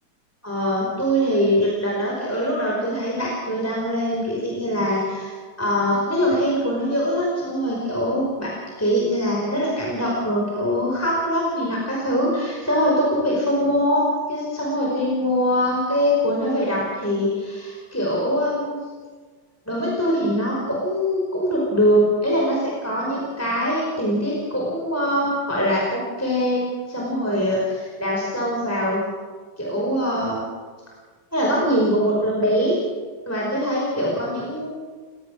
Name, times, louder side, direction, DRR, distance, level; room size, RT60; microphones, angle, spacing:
voice 1, 0.4-8.5 8.8-14.0 14.3-18.8 19.7-26.6 26.9-29.0 29.6-30.4 31.3-32.8 33.3-34.7, equal, 5° left, -4 dB, 5.0 m, -23 dB
29.5 x 17.5 x 6.5 m, 1.5 s
omnidirectional pair, 2.2 m